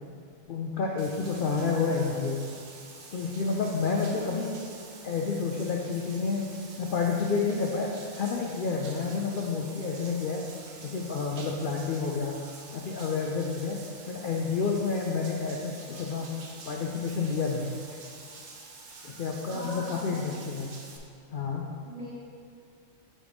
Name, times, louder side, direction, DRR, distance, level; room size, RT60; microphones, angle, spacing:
voice 1, 0.5-2.4 3.1-4.5 5.0-6.5 6.8-7.9 8.2-10.4 10.8-12.4 12.7-13.8 14.1-16.3 16.7-17.7 19.0-20.7 21.3-21.6, left 5 dB, 75° left, 0 dB, 0.4 m, -29 dB
Bathtub (filling or washing), 1.0-21.0, right 3 dB, 60° right, 1.0 m, -47 dB
voice 2, 1.6-2.2 4.1-4.9 19.5-20.4 21.8-22.1, left 1 dB, 40° right, -7 dB, 1.5 m, -42 dB
7.2 x 5.1 x 3.5 m, 2.3 s
omnidirectional pair, 1.5 m